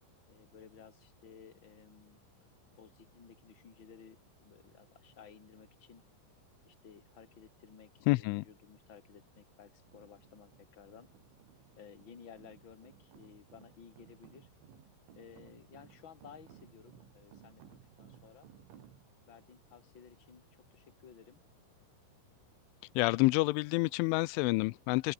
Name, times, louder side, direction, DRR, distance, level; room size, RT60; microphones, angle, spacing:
voice 1, 0.3-2.2 2.8-6.0 6.6-11.1 11.8-14.5 15.1-18.5 19.3-20.4 20.7-21.4, left 7 dB, 30° left, 2.8 m, -56 dB
voice 2, 8.1-8.4 23.0-25.1, left 23 dB, 85° left, 3.0 m, -28 dB
sound 1, 9.9-19.3, right 10 dB, 80° right, 5.3 m, -60 dB
open air
omnidirectional pair, 5.5 m